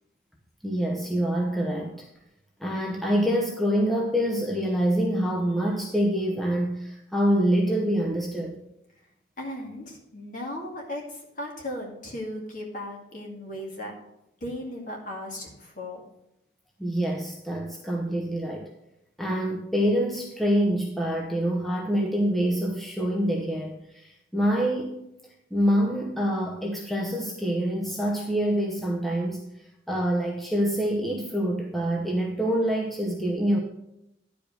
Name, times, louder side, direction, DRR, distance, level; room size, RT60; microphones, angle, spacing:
voice 1, 0.6-2.1 2.6-8.6 16.8-18.7 19.2-25.0 25.5-33.6, equal, ahead, -1 dB, 0.8 m, -26 dB
voice 2, 9.4-13.9 14.4-16.0, left 1 dB, 45° left, -1 dB, 2.2 m, -36 dB
10.5 x 5.1 x 6.5 m, 0.83 s
head